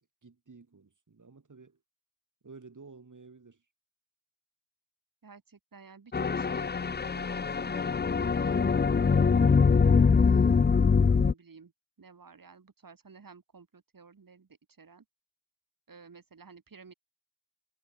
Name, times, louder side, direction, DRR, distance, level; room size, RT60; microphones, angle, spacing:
voice 1, 0.2-1.8 2.4-3.7, right 4 dB, 65° right, 4.4 m, -52 dB
voice 2, 5.2-9.6 10.2-11.7 12.0-14.5 14.8-15.0 15.9-16.9, right 5 dB, 90° right, 4.8 m, -53 dB
sound 1, 6.1-11.3, left 5 dB, 30° left, 0.5 m, -23 dB
wide cardioid pair, 60°, 33 cm